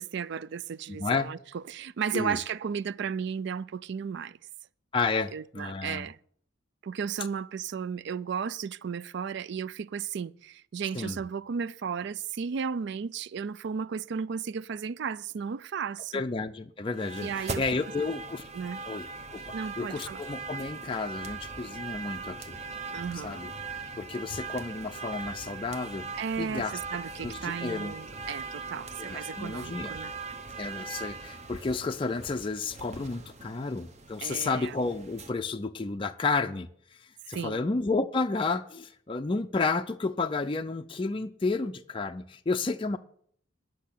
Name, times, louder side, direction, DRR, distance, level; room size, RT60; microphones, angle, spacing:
voice 1, 0.0-4.4 5.3-6.2 6.8-16.2 17.2-17.6 18.5-18.8 19.5-20.2 22.9-23.4 26.2-30.1 34.2-34.7 37.3-37.6, right 6 dB, 55° right, 0.4 m, -34 dB
voice 2, 0.9-1.3 2.1-2.4 4.9-6.1 10.9-11.2 16.1-18.4 18.9-22.6 23.1-23.5 24.0-26.1 26.4-26.8 27.2-27.9 29.0-29.9 30.6-43.0, left 3 dB, 25° left, 0.4 m, -31 dB
sound 1, 16.9-35.3, right 4 dB, 35° right, 1.0 m, -40 dB
10.5 x 6.5 x 8.5 m
head